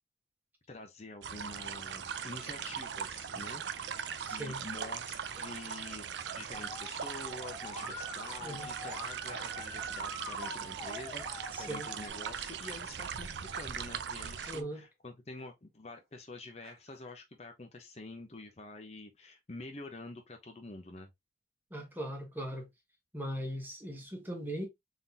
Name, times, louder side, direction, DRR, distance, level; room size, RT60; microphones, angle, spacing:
voice 1, 0.7-21.1, left 2 dB, 35° left, 0.7 m, -47 dB
sound 1, 1.2-14.6, right 7 dB, 75° right, 0.4 m, -40 dB
voice 2, 4.2-4.6 8.4-8.7 11.5-11.9 14.5-14.8 21.7-22.7 23.1-24.7, right 1 dB, 10° right, 1.1 m, -39 dB
sound 2, 4.7-8.1 8.8-9.9 10.4-11.2 11.8-12.3 12.6-14.2 14.7-14.9 15.4-15.5 16.6-17.1, right 1 dB, 60° right, 1.3 m, -52 dB
Musical instrument, 6.5-12.1, equal, 10° left, 1.1 m, -45 dB
3.7 x 3.7 x 2.7 m
head